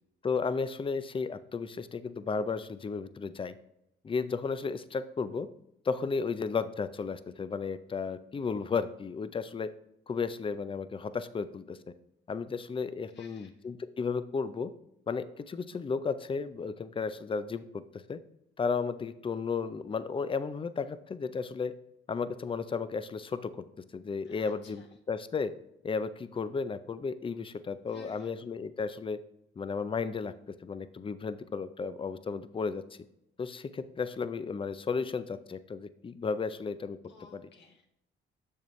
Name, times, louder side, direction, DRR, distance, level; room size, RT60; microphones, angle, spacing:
voice 1, 0.2-3.6 4.0-5.5 5.8-9.7 10.1-11.8 12.3-14.7 15.1-17.8 18.1-18.2 18.6-21.7 22.1-23.6 23.9-25.5 25.8-29.2 29.6-30.3 30.6-32.8 33.4-37.0 37.3-37.5, left 5 dB, 25° left, 13 dB, 0.5 m, -34 dB
voice 2, 13.1-13.5 24.2-24.8 27.9-28.3 37.1-37.9, left 5 dB, 65° left, 2 dB, 1.5 m, -55 dB
7.0 x 6.5 x 3.2 m, 0.82 s
cardioid pair, 90°, 20 cm